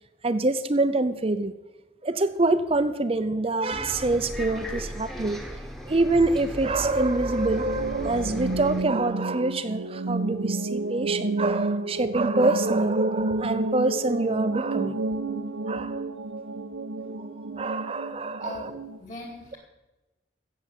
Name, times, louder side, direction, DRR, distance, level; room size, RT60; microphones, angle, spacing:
voice 1, 0.2-1.5 2.0-5.4 5.9-15.0 15.7-16.0 17.0-18.7, right 2 dB, 30° right, 12 dB, 0.6 m, -25 dB
Bus, 3.7-8.8, equal, ahead, 1.3 m, -36 dB
sound 1, 7.6-19.0, right 2 dB, 90° right, 1.0 m, -30 dB
voice 2, 18.4-19.6, left 2 dB, 40° left, 1 dB, 3.5 m, -40 dB
16.0 x 7.3 x 7.4 m, 1.1 s
head